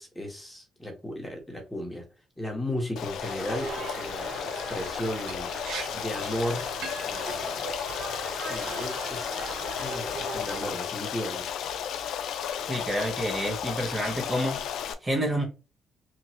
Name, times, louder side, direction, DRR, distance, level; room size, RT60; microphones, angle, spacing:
voice 1, 0.0-2.1 2.4-5.5 5.9-6.6 7.1-7.8 8.4-11.5, left 1 dB, 10° left, 1.1 m, -35 dB
Stream, 3.0-14.9, left 9 dB, 80° left, 0.4 m, -34 dB
sound 1, 3.2-10.7, right 2 dB, 70° right, 1.7 m, -39 dB
Liquid, 5.3-5.4 5.7-5.9 6.2-6.4 6.8-7.2 7.8-8.0 8.4-9.3 9.7-10.1, right 5 dB, 85° right, 0.6 m, -40 dB
voice 2, 12.7-15.4, equal, 25° right, 0.9 m, -29 dB
3.0 x 2.6 x 2.8 m
cardioid pair, 90°, 0 cm